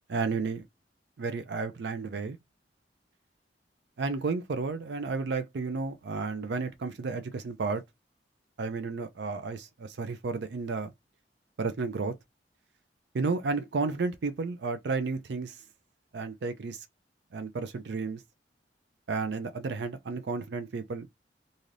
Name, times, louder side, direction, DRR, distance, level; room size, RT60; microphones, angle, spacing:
voice 1, 0.1-0.6 1.2-2.4 4.0-7.8 8.6-10.9 11.6-12.1 13.1-15.5 16.1-16.8 17.3-18.2 19.1-21.1, right 4 dB, 70° right, 0.4 m, -32 dB
2.7 x 2.5 x 3.1 m
head